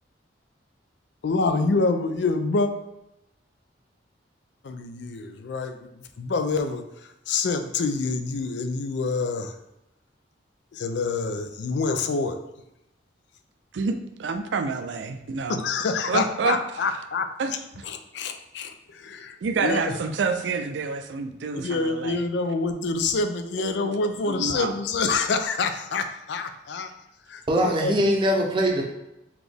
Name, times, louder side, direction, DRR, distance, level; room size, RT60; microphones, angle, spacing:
voice 1, 1.2-2.7 4.6-6.8 7.3-9.5 10.7-12.4 15.6-17.3 17.8-20.0 21.6-26.9 27.3-27.9, left 4 dB, 70° left, 8 dB, 0.4 m, -27 dB
voice 2, 13.7-15.6 16.1-16.6 17.4-17.8 19.4-22.2 23.6-23.9 24.3-24.7, right 4 dB, 75° right, 7 dB, 0.4 m, -28 dB
voice 3, 27.5-28.8, equal, 25° right, 0 dB, 0.6 m, -22 dB
4.1 x 2.9 x 3.4 m, 0.87 s
head